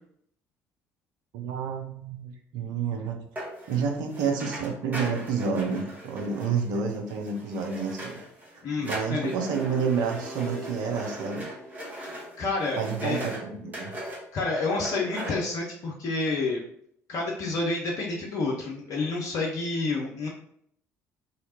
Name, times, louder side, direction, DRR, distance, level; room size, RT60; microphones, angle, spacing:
voice 1, 1.3-3.2 3.7-8.2 8.5-11.5 12.8-13.9, right 5 dB, 60° right, 2 dB, 0.6 m, -29 dB
sound 1, 3.4-8.5 8.8-13.4 13.7-14.2 14.6-15.3, right 1 dB, 20° right, 1.3 m, -39 dB
voice 2, 8.6-9.3 12.0-13.2 14.3-16.6 17.1-20.3, left 3 dB, 50° left, -1 dB, 0.7 m, -29 dB
sound 2, 9.4-12.6, right 1 dB, 5° left, 1.5 m, -42 dB
3.2 x 2.7 x 2.8 m, 0.67 s
figure-of-eight pair, 50°, 8 cm